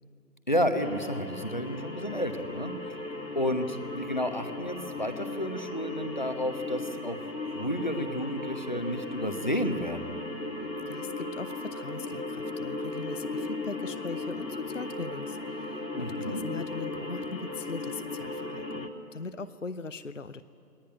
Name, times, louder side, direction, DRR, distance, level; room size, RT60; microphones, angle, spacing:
voice 1, 0.5-2.7 3.3-7.2 7.5-10.1 15.9-16.4, equal, 30° left, 8 dB, 0.9 m, -31 dB
sound 1, 0.8-18.9, left 2 dB, 80° left, 2.5 m, -37 dB
voice 2, 10.8-20.4, left 4 dB, 50° left, 13 dB, 0.6 m, -40 dB
20.5 x 19.0 x 9.9 m, 2.6 s
figure-of-eight pair, 160°, 50 cm